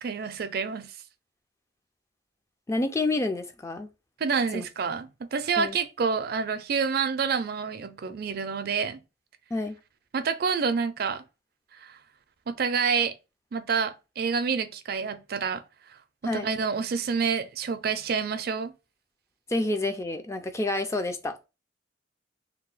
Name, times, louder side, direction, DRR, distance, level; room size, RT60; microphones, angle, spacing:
voice 1, 0.0-0.9 4.2-9.0 10.1-11.2 11.8-12.0 12.5-13.1 13.5-15.6 16.2-18.7, right 5 dB, 55° right, 0.4 m, -28 dB
voice 2, 2.7-3.9 4.5-4.7 5.6-5.8 9.5-9.8 16.2-16.5 19.5-21.4, left 2 dB, 15° left, 0.3 m, -28 dB
2.8 x 2.2 x 3.8 m
head